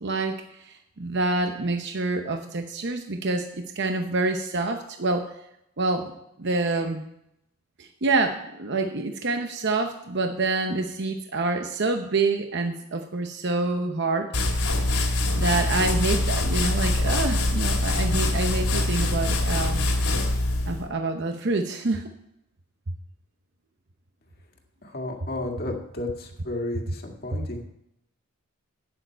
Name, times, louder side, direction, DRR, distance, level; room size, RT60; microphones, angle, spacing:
voice 1, 0.0-5.3 5.8-6.1 6.4-7.0 7.8-14.3 15.4-19.9 20.7-22.1, right 3 dB, 50° right, 5 dB, 0.8 m, -27 dB
sound 1, 14.3-20.8, left 2 dB, 80° left, 2.4 m, -24 dB
voice 2, 24.8-27.6, left 2 dB, 45° left, 2 dB, 1.9 m, -33 dB
12.0 x 9.2 x 4.5 m, 0.80 s
head